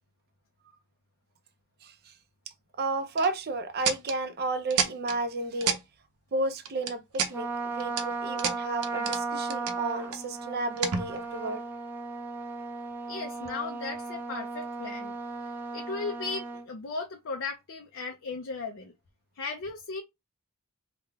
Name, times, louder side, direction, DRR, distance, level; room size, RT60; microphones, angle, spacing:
voice 1, 1.8-2.1 2.8-5.8 6.3-11.6, right 2 dB, 45° right, 0.6 m, -32 dB
sound 1, 3.2-3.3 3.8-4.2 4.7-5.2 5.6-5.8 6.6-7.3 7.8-8.0 8.4-9.2 9.5-10.2 10.8-11.4, right 6 dB, 85° right, 0.7 m, -30 dB
Trumpet, 7.3-16.7, right 3 dB, 10° right, 0.7 m, -36 dB
voice 2, 13.1-15.1 15.4-18.9 19.3-20.0, left 4 dB, 60° left, 0.5 m, -36 dB
3.5 x 2.2 x 3.5 m
head